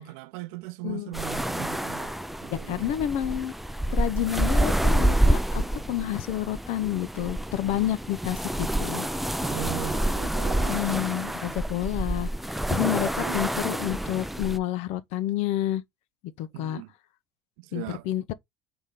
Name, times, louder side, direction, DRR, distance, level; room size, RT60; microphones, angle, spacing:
voice 1, 0.0-2.9 9.4-11.4 13.0-13.4 16.5-16.9 17.6-18.1, right 18 dB, 85° right, 0.5 m, -39 dB
sound 1, 1.1-14.6, right 1 dB, ahead, 0.4 m, -27 dB
voice 2, 2.5-3.5 3.9-5.4 5.7-9.1 10.5-12.3 12.7-15.8 16.4-16.8 17.7-18.3, left 12 dB, 70° left, 0.8 m, -29 dB
8.2 x 3.0 x 3.8 m
cardioid pair, 120°, 11 cm